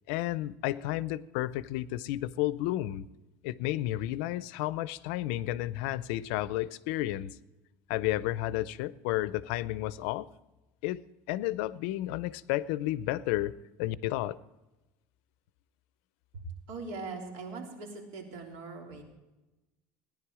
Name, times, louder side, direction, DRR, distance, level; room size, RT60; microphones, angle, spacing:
voice 1, 0.1-3.1 3.4-7.4 7.9-10.3 10.8-11.0 11.3-13.5 13.8-14.4, left 15 dB, 85° left, 17 dB, 0.6 m, -32 dB
voice 2, 16.3-19.0, right 3 dB, 75° right, 1 dB, 3.4 m, -41 dB
18.5 x 10.5 x 4.9 m, 1.1 s
cardioid pair, 150°, 6 cm